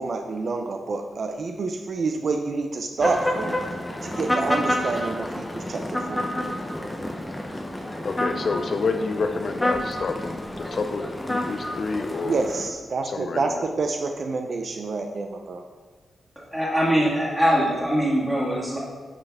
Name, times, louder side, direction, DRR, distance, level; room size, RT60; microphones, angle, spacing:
voice 1, 0.0-3.6 4.0-6.3 12.2-15.6, right 3 dB, 45° right, 4 dB, 0.5 m, -28 dB
sound 1, 3.0-12.7, left 1 dB, 10° left, 0.7 m, -29 dB
voice 2, 8.0-12.4 13.0-13.4, left 4 dB, 45° left, 7 dB, 0.4 m, -28 dB
voice 3, 16.4-18.8, equal, 5° right, -4 dB, 1.9 m, -22 dB
9.7 x 5.6 x 3.5 m, 1.4 s
wide cardioid pair, 150°, 0 cm